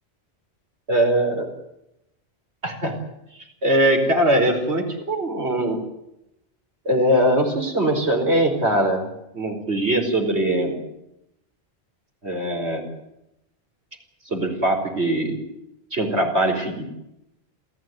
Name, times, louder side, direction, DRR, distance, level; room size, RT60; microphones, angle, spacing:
voice 1, 0.9-1.5 2.6-2.9 3.6-5.8 6.8-10.7 12.2-12.9 14.2-15.4 15.9-16.9, right 1 dB, 90° right, 4 dB, 5.1 m, -21 dB
27.5 x 16.0 x 9.5 m, 0.85 s
omnidirectional pair, 1.1 m